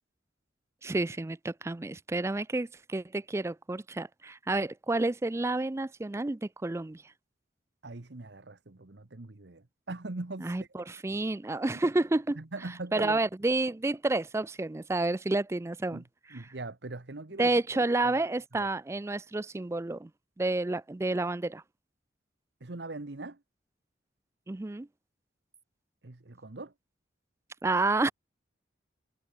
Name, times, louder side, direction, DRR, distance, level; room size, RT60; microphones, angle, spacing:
voice 1, 0.8-7.0 10.4-12.4 12.9-16.0 16.3-16.4 17.4-20.1 20.4-21.6 24.5-24.9 27.6-28.1, right 2 dB, 15° right, 0.4 m, -30 dB
voice 2, 7.8-10.7 12.4-13.2 15.9-16.0 16.3-17.6 18.0-18.1 18.6-18.7 22.6-23.4 26.0-26.7, right 2 dB, 65° right, 1.1 m, -41 dB
head